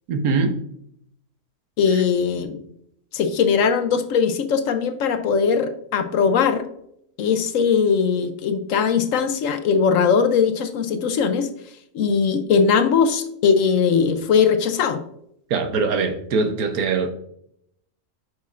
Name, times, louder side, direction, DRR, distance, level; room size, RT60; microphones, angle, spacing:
voice 1, 0.1-0.6 15.5-17.1, right 4 dB, 80° right, 7 dB, 1.4 m, -22 dB
voice 2, 1.8-2.6 3.1-6.7 7.2-11.5 11.9-15.0, left 6 dB, 65° left, 9 dB, 1.0 m, -20 dB
9.6 x 6.3 x 2.5 m, 0.73 s
omnidirectional pair, 1.5 m